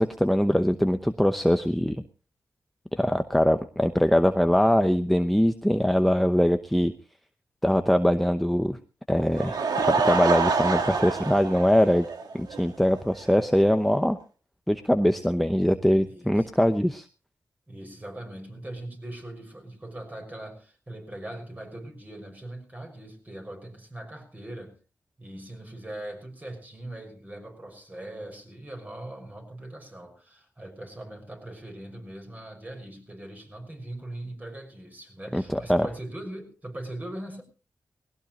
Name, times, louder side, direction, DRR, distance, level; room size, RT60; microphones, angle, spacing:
voice 1, 0.0-2.0 2.9-6.9 7.6-8.8 9.1-12.1 12.3-14.2 14.7-17.1 35.3-35.9, equal, ahead, 7 dB, 0.8 m, -22 dB
Laughter / Crowd, 9.2-12.6 13.0-13.1 13.6-13.7 13.9-14.0, right 4 dB, 85° right, 1.8 m, -26 dB
voice 2, 16.1-16.5 17.7-24.8 25.2-37.4, right 1 dB, 25° right, 3 dB, 5.8 m, -40 dB
20.0 x 17.0 x 3.0 m, 0.35 s
wide cardioid pair, 85°, 7 cm